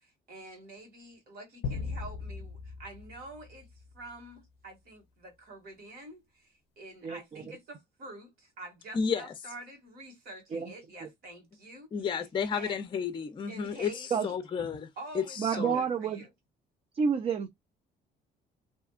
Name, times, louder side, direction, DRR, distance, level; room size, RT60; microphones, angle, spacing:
voice 1, 0.0-3.7 3.9-11.9 12.5-12.7 13.5-14.4 15.0-16.3, right 2 dB, 65° right, 1.7 m, -47 dB
sound 1, 1.6-4.2, left 5 dB, 80° left, 0.4 m, -39 dB
voice 2, 7.0-7.4 10.5-10.7 11.0-11.1 14.1-14.3 15.4-16.2 16.9-17.5, right 6 dB, 35° right, 0.4 m, -29 dB
voice 3, 8.9-9.3 11.9-14.9 15.1-15.8, left 6 dB, 30° left, 0.5 m, -32 dB
2.7 x 2.3 x 2.3 m
cardioid pair, 110°, 17 cm